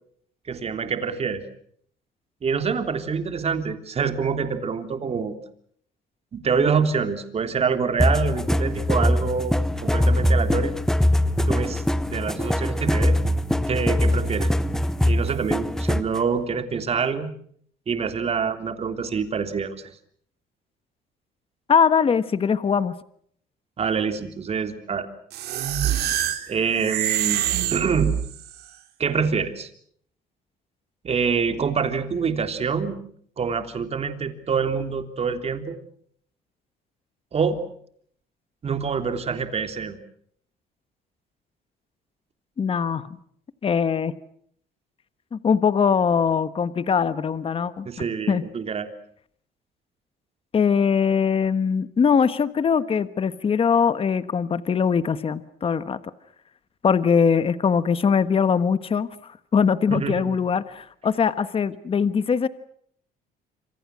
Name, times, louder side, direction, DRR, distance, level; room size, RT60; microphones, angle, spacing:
voice 1, 0.5-1.4 2.4-5.4 6.3-9.5 9.8-10.7 11.4-11.8 12.1-13.2 13.7-14.5 15.0-17.3 17.9-19.9 23.8-25.1 26.5-28.2 29.0-29.7 31.0-33.0 33.4-35.8 37.3-37.6 38.6-40.0 47.9-48.9 59.9-60.4, right 6 dB, 35° right, 7 dB, 3.5 m, -26 dB
sound 1, 8.0-16.2, left 1 dB, 5° left, 1.1 m, -22 dB
voice 2, 21.7-23.0 42.6-43.1 43.6-44.1 45.3-47.9 48.3-48.4 50.5-56.0 56.8-62.5, left 6 dB, 35° left, 13 dB, 1.3 m, -21 dB
sound 2, 25.3-28.6, right 11 dB, 70° right, 3.0 m, -25 dB
27.0 x 27.0 x 6.3 m, 0.64 s
cardioid pair, 110°, 17 cm